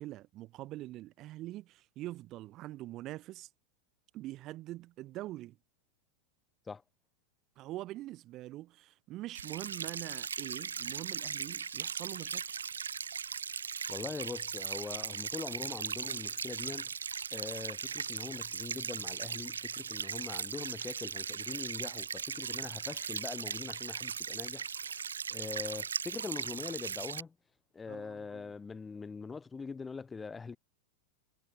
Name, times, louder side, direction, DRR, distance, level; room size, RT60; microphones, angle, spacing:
voice 1, 0.0-3.5 4.1-5.6 7.6-12.4 27.9-28.5, right 16 dB, 35° right, 1.3 m, -44 dB
sound 1, 9.3-27.2, right 6 dB, 70° right, 0.4 m, -38 dB
voice 2, 13.9-16.9 17.3-24.9 25.3-27.4 27.7-30.6, left 4 dB, 15° left, 1.6 m, -43 dB
figure-of-eight pair, 90°, 0 cm